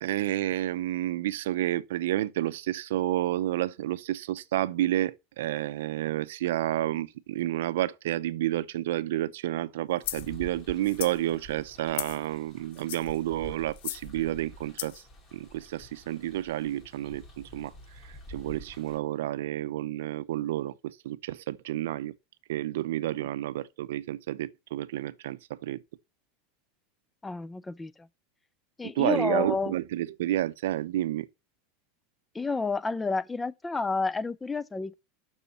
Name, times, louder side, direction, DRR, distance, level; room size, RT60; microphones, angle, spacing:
voice 1, 0.0-15.0 15.3-17.7 18.0-22.1 22.5-25.8 28.9-31.3, right 14 dB, 85° right, 0.5 m, -30 dB
sound 1, 10.0-10.3 10.8-11.2 11.9-12.3 12.7-13.2 13.8-14.1 14.8-15.0, left 14 dB, 75° left, 0.5 m, -36 dB
sound 2, 10.0-19.0, equal, 30° left, 3.4 m, -48 dB
voice 2, 27.2-27.9 28.8-29.7 32.3-35.0, left 4 dB, 10° left, 0.4 m, -30 dB
7.1 x 6.3 x 6.9 m
supercardioid pair, 155°, 0 cm